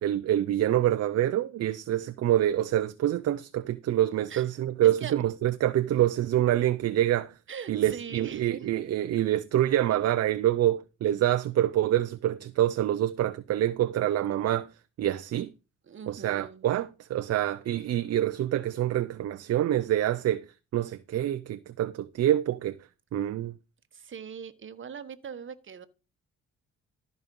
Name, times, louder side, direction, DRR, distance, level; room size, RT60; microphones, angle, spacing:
voice 1, 0.0-7.3 7.7-14.7 15.0-15.5 16.1-20.5 20.7-22.8 23.1-23.5, right 12 dB, 55° right, 0.6 m, -26 dB
voice 2, 4.8-5.1 6.0-6.1 7.5-8.7 15.9-16.7 23.9-25.9, right 7 dB, 40° right, 1.3 m, -40 dB
13.5 x 5.3 x 5.4 m
cardioid pair, 90°, 30 cm